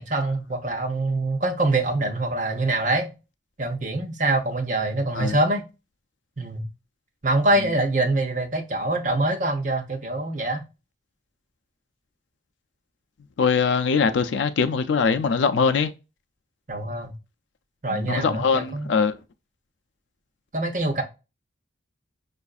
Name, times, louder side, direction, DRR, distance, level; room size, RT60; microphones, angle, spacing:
voice 1, 0.0-3.1 3.6-5.6 6.4-6.7 7.2-10.6 16.7-17.1 17.8-18.9 20.5-21.0, right 2 dB, 40° right, 0.7 m, -24 dB
voice 2, 13.4-15.9 17.9-19.1, left 5 dB, 75° left, 0.4 m, -22 dB
5.5 x 2.5 x 2.3 m
head